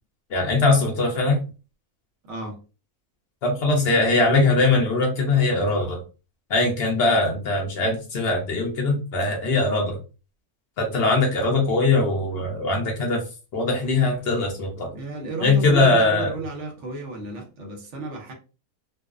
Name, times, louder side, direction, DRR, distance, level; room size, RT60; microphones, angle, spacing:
voice 1, 0.3-1.4 3.4-6.0 6.5-10.0 10.8-13.2 13.5-14.9 15.4-16.3, left 3 dB, 60° left, 0.7 m, -21 dB
voice 2, 14.9-18.3, right 2 dB, 60° right, 1.0 m, -33 dB
2.5 x 2.0 x 2.4 m
omnidirectional pair, 1.5 m